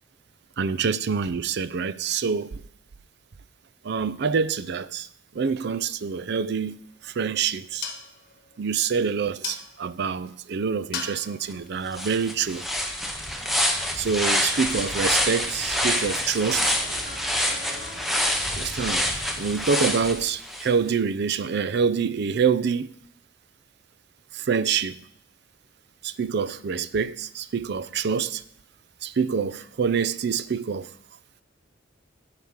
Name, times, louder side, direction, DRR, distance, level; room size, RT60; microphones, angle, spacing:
voice 1, 0.6-2.6 3.8-5.1 5.3-6.8 7.0-7.8 8.6-12.7 14.0-16.8 18.6-19.1 19.4-22.9 24.3-25.0 26.0-28.4 29.0-30.9, right 6 dB, 60° right, 0.5 m, -26 dB
sound 1, 6.6-13.1, left 6 dB, 55° left, 1.3 m, -41 dB
sound 2, 11.5-11.6 11.9-20.7, left 1 dB, ahead, 1.0 m, -26 dB
sound 3, 14.7-19.7, equal, 85° right, 2.4 m, -45 dB
10.5 x 4.9 x 7.2 m
head